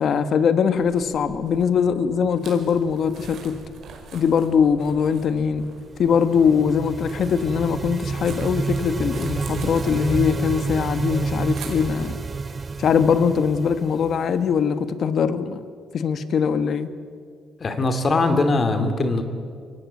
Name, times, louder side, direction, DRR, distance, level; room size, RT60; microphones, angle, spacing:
voice 1, 0.0-3.6 4.1-5.7 6.0-12.2 12.8-15.6 15.9-16.9, left 6 dB, 60° left, 12 dB, 1.4 m, -21 dB
sound 1, 0.7-12.1, right 5 dB, 65° right, 4.5 m, -44 dB
sound 2, 5.8-14.6, right 4 dB, 35° right, 0.5 m, -29 dB
voice 2, 17.6-19.2, left 3 dB, 40° left, 7 dB, 2.6 m, -21 dB
23.5 x 17.5 x 9.4 m, 2.2 s
cardioid pair, 90°, 0 cm